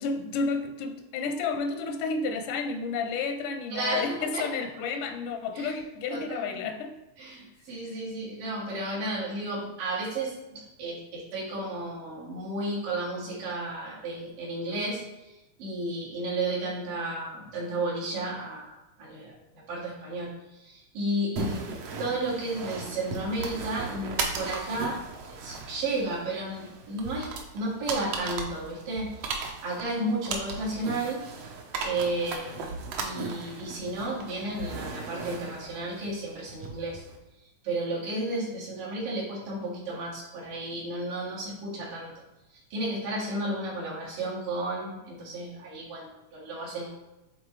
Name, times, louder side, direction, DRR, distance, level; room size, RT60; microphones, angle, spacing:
voice 1, 0.0-6.9, left 4 dB, 85° left, 7 dB, 2.1 m, -31 dB
voice 2, 3.7-4.1 4.3-4.5 5.5-5.7 6.1-6.7 7.2-21.7 22.0-25.0 25.4-27.3 27.5-29.1 29.4-31.2 31.8-32.7 33.0-37.0 37.6-42.1 42.7-46.9, right 2 dB, 90° right, -6 dB, 3.5 m, -33 dB
sound 1, 21.4-37.2, right 4 dB, 75° right, 1.5 m, -37 dB
8.6 x 3.8 x 3.1 m, 0.97 s
omnidirectional pair, 3.7 m